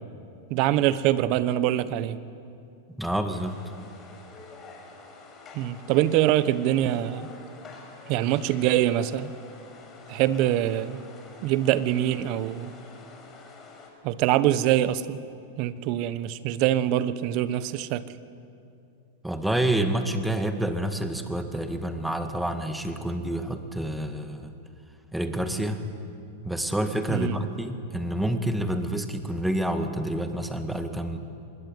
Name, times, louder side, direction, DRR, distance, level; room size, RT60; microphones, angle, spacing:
voice 1, 0.5-2.2 5.5-7.3 8.1-9.3 10.1-11.0 11.4-12.7 14.0-15.2 15.6-18.1 27.1-27.4, right 12 dB, 50° right, 1.2 m, -24 dB
voice 2, 3.0-3.6 19.2-24.5 25.1-25.8 26.4-31.2, right 1 dB, 5° right, 2.1 m, -28 dB
sound 1, 3.3-13.9, left 4 dB, 25° left, 6.0 m, -47 dB
25.5 x 21.0 x 9.3 m
hypercardioid pair, 120°, 0 cm